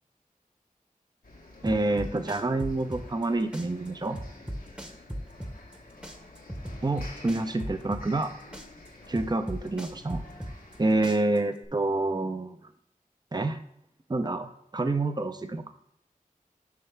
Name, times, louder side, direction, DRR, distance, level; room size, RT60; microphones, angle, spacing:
sound 1, 1.2-11.1, left 2 dB, 90° left, 1.2 m, -50 dB
voice 1, 1.6-4.2 6.8-8.3 9.1-10.2 10.8-12.6 13.3-13.6 14.1-15.7, right 2 dB, 30° right, 8 dB, 0.6 m, -28 dB
sound 2, 1.7-3.3 3.5-5.8 6.0-8.3 8.5-10.8 11.0-11.7, equal, 5° right, 0.9 m, -37 dB
8.4 x 5.5 x 3.3 m, 0.73 s
wide cardioid pair, 50°, 14 cm